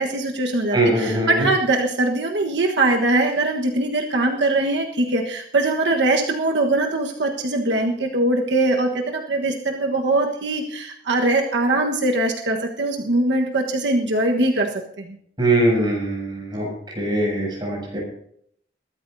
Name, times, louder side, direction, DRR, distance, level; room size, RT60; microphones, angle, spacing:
voice 1, 0.0-14.7 15.0-15.1, right 2 dB, 75° right, 1 dB, 1.4 m, -22 dB
voice 2, 0.7-1.4 15.4-16.7 17.0-18.0, right 1 dB, 25° right, -3 dB, 7.3 m, -21 dB
22.0 x 13.0 x 2.7 m, 0.67 s
head